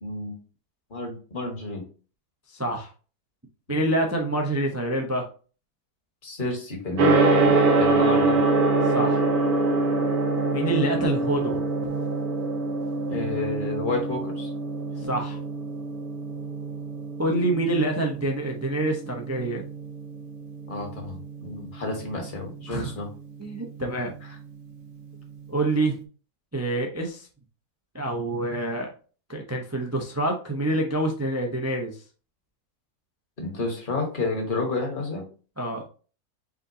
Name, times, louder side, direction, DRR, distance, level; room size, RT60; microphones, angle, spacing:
voice 1, 0.0-0.4 0.9-1.8 6.2-8.4 13.1-14.5 20.7-23.1 33.4-35.2, left 3 dB, 35° left, 1 dB, 1.5 m, -30 dB
voice 2, 2.5-2.9 3.7-5.3 8.9-9.2 10.5-11.6 15.1-15.4 17.2-19.6 22.7-22.9 23.4-24.1 25.5-26.0 26.5-27.3 27.9-28.9 29.3-32.0 35.6-35.8, right 1 dB, 25° right, 2 dB, 0.3 m, -26 dB
Gong, 7.0-25.9, right 3 dB, 75° right, 1.4 m, -26 dB
5.1 x 3.9 x 2.7 m, 0.37 s
omnidirectional pair, 1.6 m